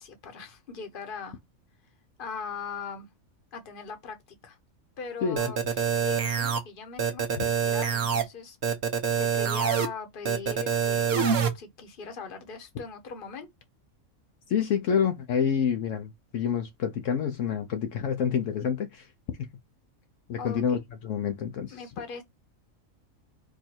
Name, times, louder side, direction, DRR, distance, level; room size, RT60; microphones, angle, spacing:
voice 1, 0.0-1.4 2.2-3.1 3.5-4.6 5.0-8.6 9.2-13.5 20.4-20.8 21.7-22.2, left 5 dB, 45° left, 1.1 m, -40 dB
sound 1, 5.4-6.6 7.0-8.2 8.6-9.9 10.2-11.5, right 7 dB, 55° right, 1.0 m, -25 dB
voice 2, 14.5-19.1 20.3-21.8, left 7 dB, 70° left, 1.0 m, -28 dB
4.6 x 2.5 x 4.3 m
omnidirectional pair, 1.4 m